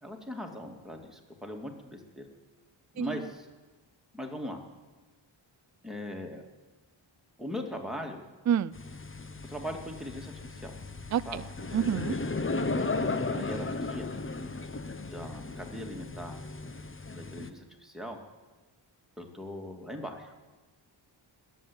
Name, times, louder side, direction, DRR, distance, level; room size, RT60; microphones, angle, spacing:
voice 1, 0.0-2.2 2.9-3.5 4.1-4.6 5.8-6.4 7.4-8.2 9.5-10.7 11.3-11.4 13.3-14.1 14.9-16.4 17.2-18.2 19.2-20.3, left 1 dB, ahead, 2 dB, 2.4 m, -39 dB
sound 1, 8.7-17.5, left 3 dB, 25° left, 0.9 m, -35 dB
voice 2, 11.1-11.4 11.7-12.1, right 9 dB, 40° right, 17 dB, 0.4 m, -28 dB
20.5 x 7.8 x 8.7 m, 1.3 s
wide cardioid pair, 75°, 49 cm